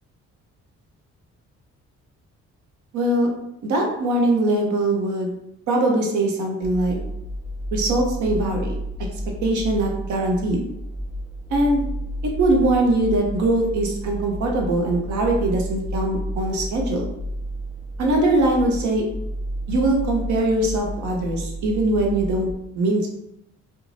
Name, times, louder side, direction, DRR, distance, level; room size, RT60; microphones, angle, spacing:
voice 1, 2.9-3.3 3.6-5.4 5.7-7.0 7.7-8.7 9.4-10.6 11.5-11.8 12.4-17.1 18.0-19.1 19.7-22.5 22.7-23.1, right 2 dB, 70° right, 1 dB, 0.8 m, -21 dB
sound 1, 6.6-22.5, equal, 10° right, 0.6 m, -31 dB
2.5 x 2.2 x 3.2 m, 0.82 s
cardioid pair, 90°, 30 cm